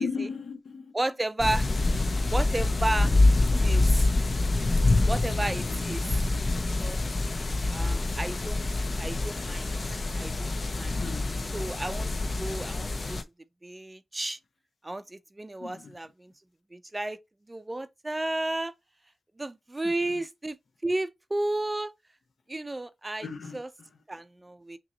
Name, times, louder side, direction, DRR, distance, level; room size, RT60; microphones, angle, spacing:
voice 1, 0.0-0.8 10.9-11.5 15.6-15.8 23.2-23.6, left 5 dB, 85° left, 0.8 m, -35 dB
voice 2, 0.9-1.7 2.3-3.1 3.4-4.1 5.1-6.2 6.6-7.0 7.7-11.0 11.5-13.2 13.6-14.4 14.8-16.3 16.7-17.2 17.5-18.7 19.4-20.6 20.8-21.9 22.5-23.7 24.1-24.8, right 2 dB, 20° right, 0.5 m, -33 dB
sound 1, 1.4-13.2, left 2 dB, 45° left, 0.5 m, -26 dB
5.8 x 3.0 x 2.7 m
wide cardioid pair, 120°, 0 cm